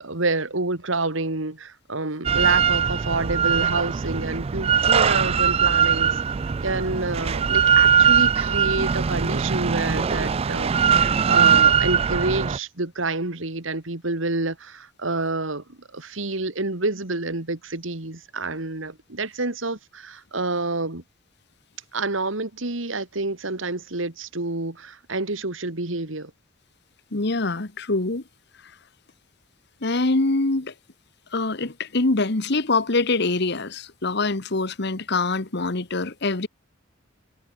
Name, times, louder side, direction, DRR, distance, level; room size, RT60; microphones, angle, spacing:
voice 1, 0.0-6.2 6.6-21.0 21.9-26.3, right 2 dB, 75° right, 2.5 m, -28 dB
Drill, 2.2-12.6, right 7 dB, 30° right, 0.3 m, -20 dB
voice 2, 27.1-28.2 29.8-30.7 31.3-36.5, left 3 dB, 55° left, 1.4 m, -24 dB
head